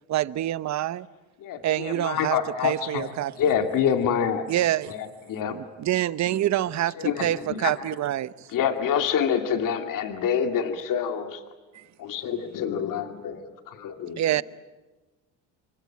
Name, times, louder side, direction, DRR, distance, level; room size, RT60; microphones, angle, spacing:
voice 1, 0.1-1.1 1.6-2.4 2.6-3.3 4.5-5.0 5.5-8.3 11.7-11.8 14.2-14.4, right 13 dB, 50° right, 0.9 m, -26 dB
voice 2, 1.4-4.4 4.9-5.6 7.0-7.8 8.5-11.4 12.0-13.4 13.7-14.2, left 8 dB, 60° left, 2.5 m, -27 dB
voice 3, 13.0-13.6 14.3-14.4, left 4 dB, 30° left, 4.9 m, -50 dB
27.5 x 24.0 x 8.6 m
cardioid pair, 105°, 36 cm